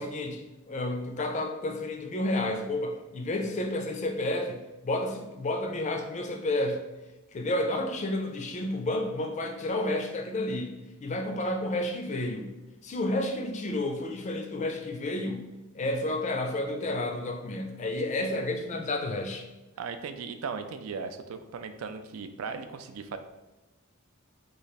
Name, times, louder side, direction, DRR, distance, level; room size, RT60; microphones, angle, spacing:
voice 1, 0.0-6.8 7.3-10.7 11.0-12.5 12.8-15.4 15.7-19.4, left 1 dB, 35° left, 4 dB, 0.4 m, -31 dB
voice 2, 19.8-23.2, right 5 dB, 80° right, 8 dB, 0.3 m, -37 dB
3.2 x 2.4 x 4.0 m, 1.1 s
head